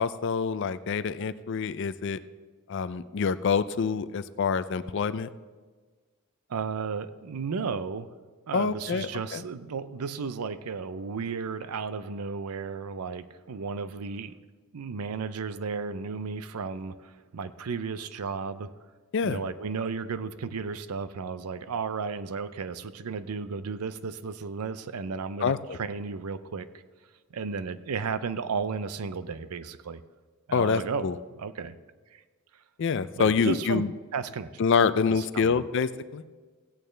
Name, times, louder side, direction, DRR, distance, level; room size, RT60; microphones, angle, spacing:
voice 1, 0.0-2.2 2.7-5.3 8.5-9.4 19.1-19.4 25.4-25.6 30.5-31.2 32.8-33.9 34.6-36.2, left 5 dB, 55° left, 15 dB, 0.4 m, -26 dB
voice 2, 6.5-8.1 8.5-14.3 14.7-18.7 19.2-26.7 27.3-30.0 30.5-31.1 31.3-31.7 32.1-32.2 33.2-33.8 34.1-34.6 35.1-35.6, right 5 dB, 90° right, 14 dB, 0.5 m, -34 dB
16.0 x 8.7 x 3.3 m, 1.4 s
head